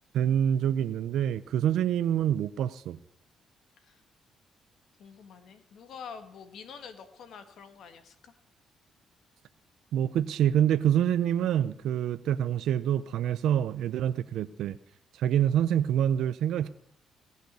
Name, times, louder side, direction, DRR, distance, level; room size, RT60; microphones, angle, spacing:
voice 1, 0.1-3.0 9.9-14.8 15.2-16.7, right 10 dB, 80° right, 13 dB, 0.5 m, -26 dB
voice 2, 5.0-8.3, left 6 dB, 70° left, 9 dB, 1.7 m, -47 dB
17.5 x 6.5 x 8.2 m, 0.72 s
cardioid pair, 90°, 0 cm